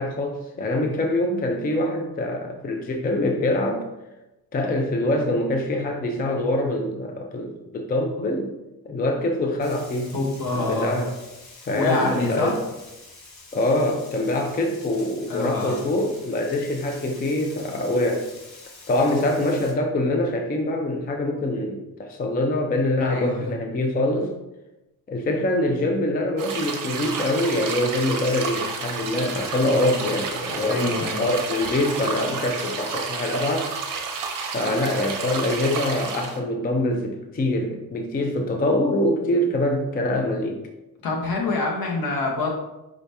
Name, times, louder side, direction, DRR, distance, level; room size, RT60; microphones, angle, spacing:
voice 1, 0.0-3.9 4.5-8.5 8.8-10.1 10.5-11.1 11.7-12.6 13.5-18.2 18.9-24.3 25.1-33.7 34.5-40.6, left 1 dB, 25° left, 3 dB, 0.4 m, -24 dB
Frying (food), 9.6-19.7, left 2 dB, 45° left, 1.0 m, -46 dB
voice 2, 10.1-10.9 11.7-12.5 15.3-15.8 23.0-23.5 30.6-31.2 41.0-42.5, left 3 dB, 65° left, -1 dB, 1.2 m, -26 dB
sound 1, 26.4-36.4, right 5 dB, 55° right, 0.7 m, -31 dB
4.9 x 2.7 x 3.3 m, 0.98 s
cardioid pair, 130°, 38 cm